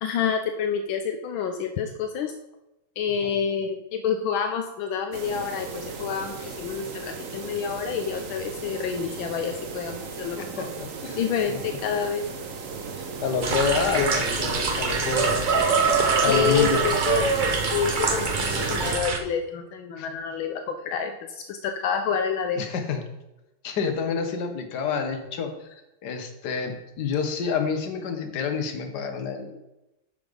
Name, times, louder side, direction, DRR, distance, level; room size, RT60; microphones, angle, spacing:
voice 1, 0.0-2.3 3.0-10.7 11.2-12.2 16.3-17.3 17.7-22.7, left 7 dB, 80° left, 6 dB, 1.4 m, -28 dB
sound 1, 5.1-19.0, right 5 dB, 50° right, 1.1 m, -30 dB
voice 2, 10.4-11.2 11.5-11.6 12.9-15.4 16.2-16.8 20.0-20.1 22.6-23.0 23.6-25.5 26.0-29.5, left 5 dB, 55° left, 5 dB, 1.6 m, -28 dB
sound 2, 13.4-19.2, right 4 dB, 80° right, 0.4 m, -27 dB
9.5 x 5.9 x 5.2 m, 0.94 s
omnidirectional pair, 2.3 m